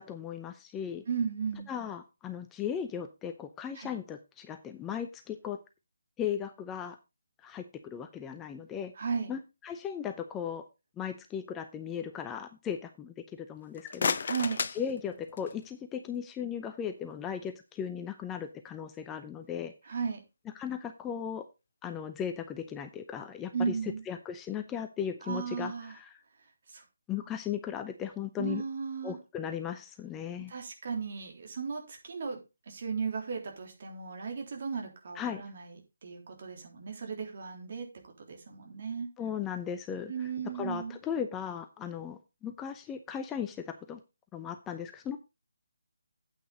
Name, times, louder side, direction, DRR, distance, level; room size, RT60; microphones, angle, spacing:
voice 1, 0.0-1.0 1.7-5.6 6.2-7.0 7.4-8.9 9.3-10.6 11.0-14.3 14.8-19.7 20.5-21.5 21.8-26.2 27.1-28.6 29.0-30.5 35.1-35.4 39.2-40.1 40.6-44.0 44.3-45.2, left 8 dB, 10° left, 8 dB, 0.7 m, -37 dB
voice 2, 1.1-1.7 3.8-3.9 9.0-9.3 14.2-14.6 19.9-20.2 23.5-24.0 25.3-25.9 26.7-26.8 28.4-29.2 30.5-32.4 32.7-37.9 38.2-39.1 40.1-41.0, right 5 dB, 50° right, 2 dB, 3.5 m, -35 dB
sound 1, 13.6-15.7, left 5 dB, 50° left, 0.6 m, -34 dB
9.3 x 8.5 x 4.0 m, 0.26 s
figure-of-eight pair, 150°, 0 cm